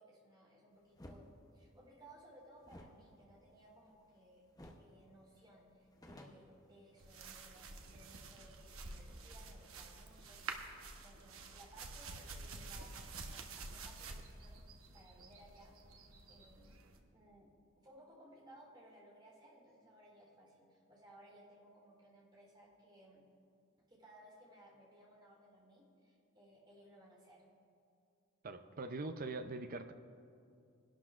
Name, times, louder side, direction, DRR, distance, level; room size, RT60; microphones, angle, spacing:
voice 1, 0.0-4.4 4.8-14.6 14.9-16.9 17.1-17.5 17.8-23.2 23.9-27.5 28.5-28.8, right 1 dB, 25° right, -3 dB, 3.6 m, -61 dB
sound 1, 1.0-1.2 2.6-4.2 4.6-4.9 5.2-5.3 5.7-7.2, left 1 dB, 20° left, 0.8 m, -56 dB
sound 2, 7.0-17.0, right 3 dB, 85° right, 1.0 m, -50 dB
voice 2, 28.4-29.9, right 3 dB, 45° right, 8 dB, 0.5 m, -42 dB
22.0 x 11.5 x 2.5 m, 2.4 s
head